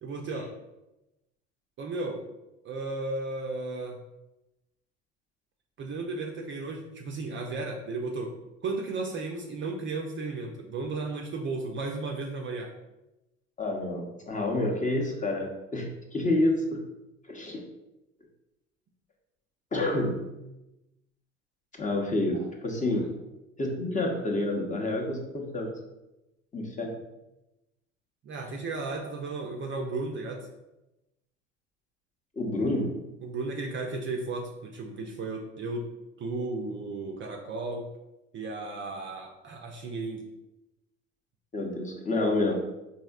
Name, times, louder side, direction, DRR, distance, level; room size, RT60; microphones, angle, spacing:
voice 1, 0.0-0.5 1.8-2.2 2.6-4.0 5.8-8.3 8.6-12.7 22.3-22.5 28.2-30.5 33.2-35.9 36.2-37.9 38.3-40.2, right 3 dB, 30° right, 1 dB, 0.5 m, -34 dB
voice 2, 13.6-16.8 17.3-17.6 19.7-20.2 21.8-23.0 23.6-25.7 26.5-27.0 32.4-33.0 41.5-42.7, left 2 dB, 20° left, 1 dB, 0.7 m, -28 dB
4.1 x 2.7 x 2.3 m, 0.95 s
figure-of-eight pair, 60°, 38 cm